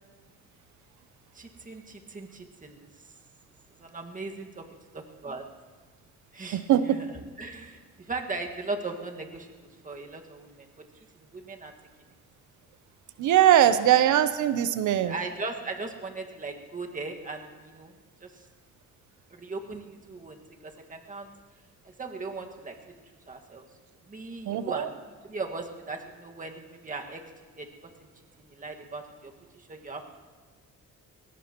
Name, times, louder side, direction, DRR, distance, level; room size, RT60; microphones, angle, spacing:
voice 1, 1.3-2.9 3.8-4.7 4.9-5.4 6.3-10.7 11.3-11.7 15.1-17.9 18.2-18.4 19.3-21.3 22.0-22.8 23.3-23.7 24.1-25.0 25.2-27.2 27.6-27.7 28.5-30.0, right 3 dB, 25° right, 2 dB, 1.8 m, -38 dB
voice 2, 6.5-7.0 13.2-15.1 24.4-24.9, right 11 dB, 75° right, 12 dB, 0.8 m, -21 dB
21.5 x 18.5 x 3.0 m, 1.4 s
cardioid pair, 90°, 30 cm